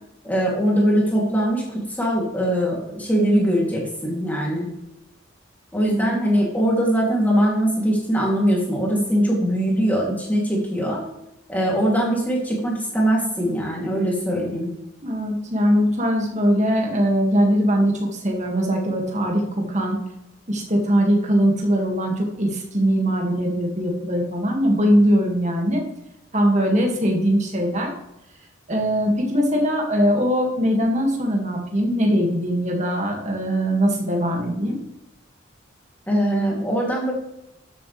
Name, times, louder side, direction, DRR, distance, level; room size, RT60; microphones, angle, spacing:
voice 1, 0.2-4.7 5.7-11.0 11.5-14.7 36.1-37.1, equal, 10° left, -3 dB, 2.8 m, -21 dB
voice 2, 15.0-20.1 20.5-25.8 26.3-27.9 28.7-34.8, equal, 35° right, 1 dB, 2.1 m, -21 dB
13.0 x 7.9 x 3.4 m, 0.83 s
head